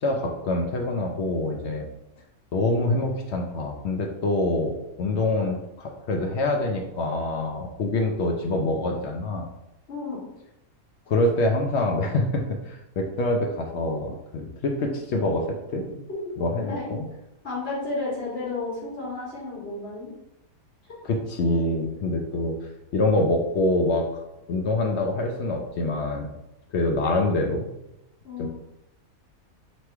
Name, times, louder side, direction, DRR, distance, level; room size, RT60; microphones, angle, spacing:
voice 1, 0.0-1.9 2.5-9.5 11.1-15.8 16.4-17.1 21.0-22.6 22.9-24.2 24.5-26.3 26.7-27.7 28.4-28.5, left 2 dB, 65° left, 2 dB, 0.7 m, -25 dB
voice 2, 9.9-10.2 15.8-16.4 16.6-16.9 17.4-20.1 20.8-21.0 28.2-28.5, left 3 dB, 45° left, -5 dB, 1.5 m, -32 dB
3.1 x 3.0 x 4.5 m, 0.86 s
omnidirectional pair, 1.5 m